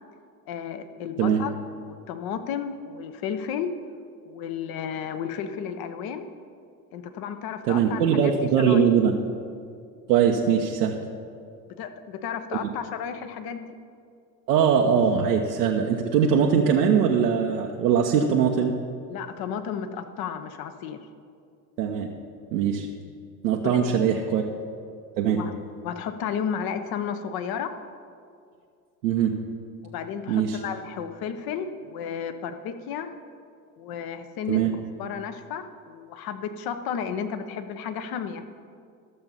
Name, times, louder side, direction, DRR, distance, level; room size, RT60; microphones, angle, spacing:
voice 1, 0.5-1.5 1.9-3.7 4.3-6.3 6.9-8.3 8.6-8.8 11.7-13.7 19.1-21.1 23.6-23.8 25.3-25.5 25.8-27.7 29.8-33.1 33.8-34.6 35.0-38.4, left 7 dB, 45° left, 9 dB, 1.0 m, -33 dB
voice 2, 7.7-9.1 10.1-11.0 14.5-18.7 21.8-22.1 22.5-22.9 23.4-24.4 25.2-25.4 29.0-29.4 30.3-30.6 34.5-34.7, right 7 dB, 70° right, 0 dB, 1.0 m, -21 dB
13.0 x 6.9 x 5.6 m, 2.3 s
hypercardioid pair, 70°, 50 cm